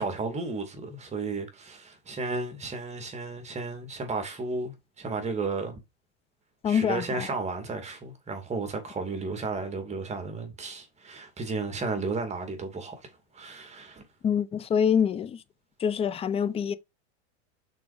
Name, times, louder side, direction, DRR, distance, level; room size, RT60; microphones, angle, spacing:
voice 1, 0.0-5.8 6.7-12.9 13.3-14.0, right 3 dB, 20° right, 2.5 m, -33 dB
voice 2, 6.6-7.3 14.2-15.4 15.8-16.7, left 7 dB, 15° left, 0.5 m, -25 dB
6.0 x 4.6 x 5.0 m
supercardioid pair, 125°, 36 cm